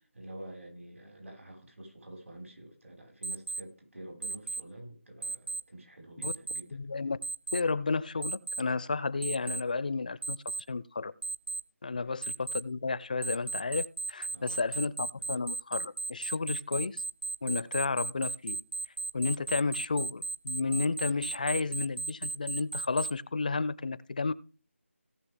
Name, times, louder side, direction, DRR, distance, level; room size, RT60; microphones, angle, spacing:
voice 1, 0.1-6.8 11.9-12.1 14.3-14.9, right 1 dB, 75° right, 5.4 m, -48 dB
Alarm, 3.2-3.6 4.2-4.6 5.2-5.6 6.2-6.6 7.2-7.6 8.2-8.6 9.2-9.6 10.2-10.6 11.2-11.6 12.2-12.6 13.2-23.1, right 3 dB, 50° right, 0.6 m, -35 dB
voice 2, 6.7-7.2 7.5-10.4 10.7-11.1 11.8-17.0 17.4-18.6 19.1-24.3, left 4 dB, 40° left, 0.4 m, -32 dB
17.5 x 6.1 x 3.6 m
figure-of-eight pair, 170°, 7 cm